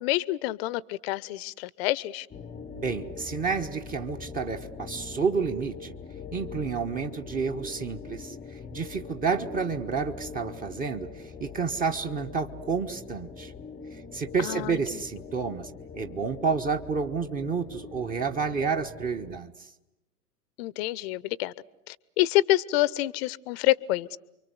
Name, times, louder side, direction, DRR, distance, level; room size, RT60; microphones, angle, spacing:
voice 1, 0.0-2.3 14.4-15.0 20.6-21.5 21.9-24.2, left 16 dB, 40° left, 21 dB, 0.9 m, -27 dB
sound 1, 2.3-19.4, left 6 dB, 15° left, 1.0 m, -42 dB
voice 2, 2.7-5.9 6.3-13.5 13.9-19.7, right 5 dB, 20° right, 6 dB, 1.3 m, -30 dB
29.5 x 24.5 x 8.0 m, 0.95 s
figure-of-eight pair, 95°, 47 cm